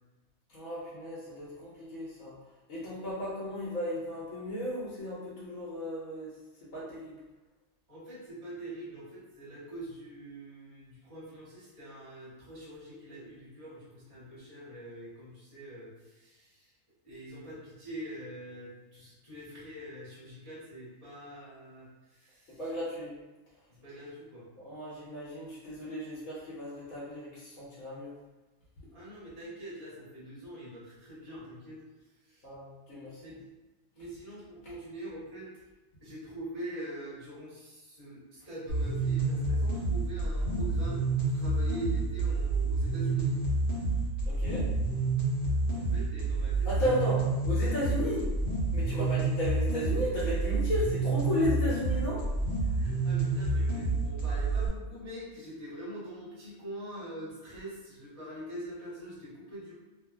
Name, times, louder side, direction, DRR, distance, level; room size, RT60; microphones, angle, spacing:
voice 1, 0.5-2.3 2.7-6.3 6.7-7.1 22.6-23.1 24.6-28.1 32.4-33.1 44.3-44.7 46.7-47.2 47.4-48.3 48.7-52.2, left 1 dB, 75° left, -8 dB, 1.1 m, -34 dB
voice 2, 7.9-16.7 17.0-22.7 23.7-24.5 28.9-31.8 32.2-32.5 33.2-33.5 33.9-35.5 36.0-43.4 45.7-47.1 48.9-49.4 51.6-52.0 52.7-59.7, right 1 dB, 25° right, -10 dB, 1.1 m, -44 dB
sound 1, 38.7-54.7, right 3 dB, 45° left, 0.9 m, -29 dB
2.6 x 2.4 x 2.3 m, 1.1 s
omnidirectional pair, 1.4 m